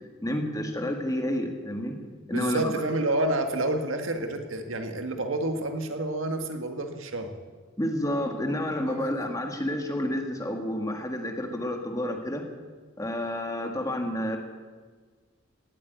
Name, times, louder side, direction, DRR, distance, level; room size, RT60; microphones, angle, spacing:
voice 1, 0.2-2.0 2.3-2.7 7.8-12.4 13.0-14.4, left 1 dB, 15° left, 4 dB, 1.7 m, -30 dB
voice 2, 2.3-7.4 8.8-9.3, right 2 dB, 80° right, 6 dB, 1.7 m, -29 dB
17.5 x 8.4 x 9.3 m, 1.4 s
head